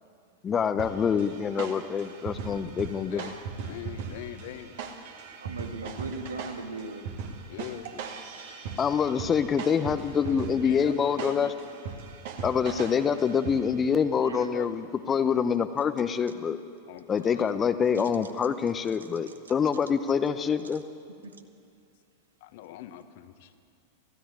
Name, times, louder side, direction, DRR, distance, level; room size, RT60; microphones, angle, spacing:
voice 1, 0.4-3.2 8.8-11.5 12.4-16.6 17.1-20.8, left 7 dB, 20° left, 10 dB, 0.9 m, -26 dB
sound 1, 0.8-13.9, right 5 dB, 55° right, 2.2 m, -39 dB
voice 2, 3.1-4.8 7.5-7.9 10.6-11.5 14.4-14.7 16.9-17.6 22.4-23.5, left 13 dB, 50° left, 10 dB, 1.4 m, -42 dB
voice 3, 5.4-7.1 10.2-10.7 11.4-11.5 14.2-14.5 17.9-18.3 19.3-19.4 21.2-21.4, right 3 dB, 70° right, 6 dB, 1.9 m, -39 dB
27.5 x 16.5 x 9.6 m, 2.4 s
figure-of-eight pair, 90°, 0 cm